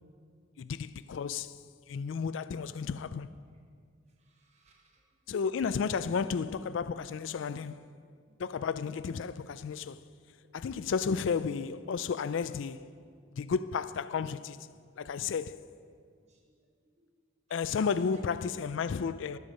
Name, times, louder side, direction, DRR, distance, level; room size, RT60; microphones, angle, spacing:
voice 1, 0.6-1.5 1.9-3.3 5.3-7.9 8.4-10.0 10.5-12.9 13.4-14.6 15.0-15.6 17.5-19.4, left 6 dB, 75° left, 0.4 m, -32 dB
voice 2, 4.2-5.0 8.3-8.4 10.4-10.5 15.5-15.6 16.2-16.7 17.5-17.8 18.1-18.2, right 2 dB, 35° right, 1.1 m, -63 dB
20.0 x 7.1 x 5.1 m
head